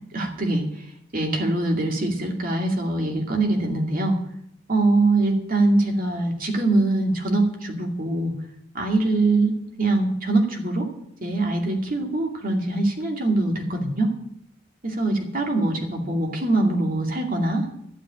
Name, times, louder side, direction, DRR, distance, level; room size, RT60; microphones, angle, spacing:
voice 1, 0.1-0.6 1.1-4.1 4.7-8.3 8.7-10.9 11.2-14.1 14.8-17.6, right 2 dB, 50° right, 2 dB, 2.4 m, -23 dB
12.0 x 7.5 x 8.6 m, 0.74 s
head